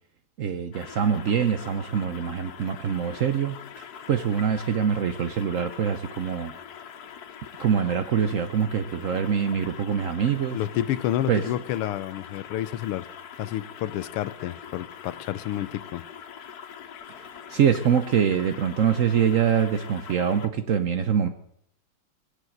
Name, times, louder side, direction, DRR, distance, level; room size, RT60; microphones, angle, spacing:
voice 1, 0.4-6.6 7.6-10.6 11.3-11.4 17.1-21.3, right 7 dB, 70° right, 8 dB, 0.7 m, -24 dB
sound 1, 0.7-20.5, left 8 dB, 55° left, 1.2 m, -43 dB
voice 2, 10.5-13.1 13.4-16.0, left 12 dB, 85° left, 16 dB, 1.7 m, -29 dB
21.5 x 8.3 x 7.8 m, 0.75 s
omnidirectional pair, 2.4 m